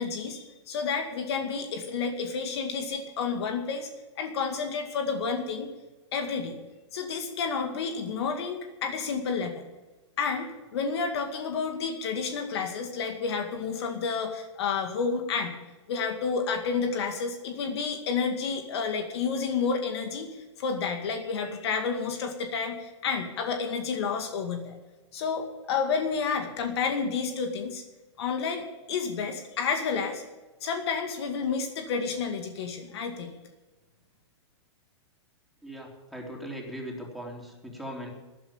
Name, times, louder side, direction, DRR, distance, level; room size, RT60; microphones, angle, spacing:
voice 1, 0.0-3.9 4.2-5.7 6.1-6.6 6.9-9.7 10.2-15.6 15.9-24.8 25.1-27.8 28.2-30.2 30.6-33.3, left 5 dB, 60° left, 5 dB, 2.1 m, -30 dB
voice 2, 35.6-38.1, equal, ahead, -1 dB, 3.7 m, -39 dB
13.5 x 11.5 x 7.2 m, 1.2 s
hypercardioid pair, 130°, 15 cm